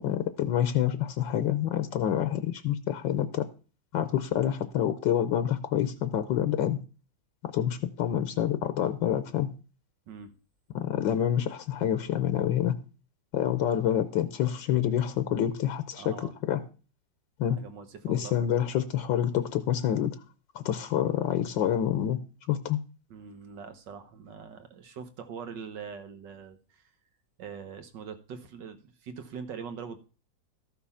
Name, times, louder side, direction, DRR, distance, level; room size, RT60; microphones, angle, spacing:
voice 1, 0.0-3.4 3.9-6.8 7.5-9.5 10.7-12.8 13.3-16.6 17.4-17.6 18.1-20.1 20.5-22.2 22.5-22.8, left 10 dB, 80° left, 1.5 m, -27 dB
voice 2, 16.0-16.4 17.5-18.6 23.1-26.9 27.4-30.0, right 6 dB, 70° right, 1.8 m, -43 dB
13.5 x 6.0 x 5.6 m
omnidirectional pair, 2.0 m